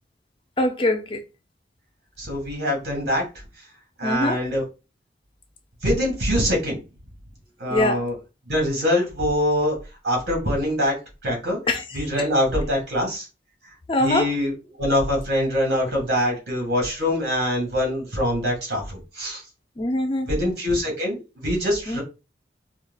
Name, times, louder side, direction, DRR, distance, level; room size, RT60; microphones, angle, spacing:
voice 1, 0.6-1.2 4.0-4.4 7.7-8.1 11.7-12.3 13.9-14.3 19.8-20.3 21.9-22.0, left 1 dB, 30° left, 0.4 m, -23 dB
voice 2, 2.2-3.2 4.0-4.6 5.8-6.8 7.6-8.1 8.5-9.8 10.0-11.0 11.2-11.6 11.9-13.3 14.0-14.5 14.8-19.4 20.3-22.0, equal, 75° right, 2.0 m, -24 dB
4.6 x 2.3 x 2.3 m
head